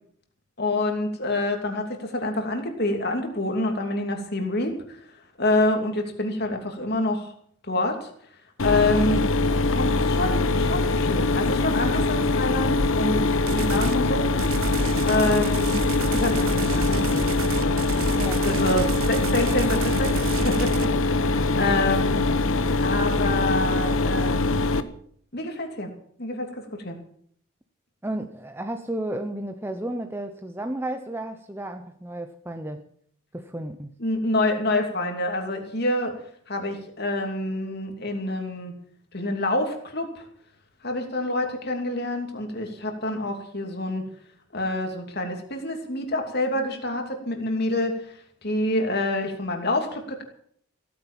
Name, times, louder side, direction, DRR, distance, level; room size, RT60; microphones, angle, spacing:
voice 1, 0.6-5.0 5.4-7.3 7.7-8.1 8.6-9.2 9.7-14.3 15.0-15.8 16.1-17.1 17.5-17.8 18.4-22.3 22.8-24.7 25.3-25.9 26.2-27.0 34.0-36.1 36.5-38.7 39.1-40.2 40.8-44.1 44.5-48.1 48.4-50.2, left 2 dB, 50° left, 4 dB, 2.8 m, -27 dB
Mechanisms, 8.6-24.8, left 3 dB, 70° left, 1.0 m, -23 dB
sound 1, 13.5-14.0 14.4-20.9, right 5 dB, 75° right, 0.7 m, -32 dB
voice 2, 18.2-18.5 28.0-32.9 33.3-33.9, right 1 dB, 10° right, 6 dB, 0.7 m, -33 dB
16.5 x 9.6 x 7.4 m, 0.62 s
head